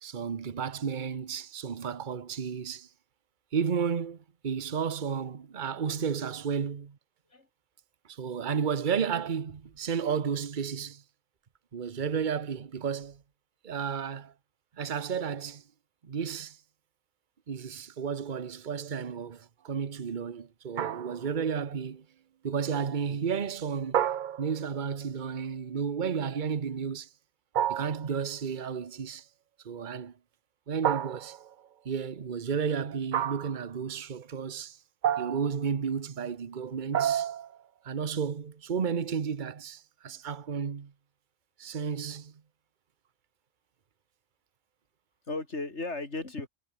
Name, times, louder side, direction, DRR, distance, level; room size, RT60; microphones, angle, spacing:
voice 1, 0.0-2.9 3.5-4.2 4.4-7.0 8.1-11.0 11.7-13.2 13.6-14.3 14.8-15.6 16.0-16.6 17.5-22.1 22.4-24.0 24.4-27.1 27.7-29.2 29.6-30.1 30.7-31.4 31.8-34.8 35.2-37.3 37.8-40.9 41.6-42.3, right 7 dB, 40° right, 1.1 m, -32 dB
sound 1, 20.8-21.4 23.9-24.8 27.5-28.2 30.8-31.5 33.1-33.6 35.0-35.6 36.9-37.6, right 10 dB, 60° right, 0.5 m, -30 dB
voice 2, 45.3-46.5, left 3 dB, 55° left, 3.8 m, -36 dB
omnidirectional pair, 1.4 m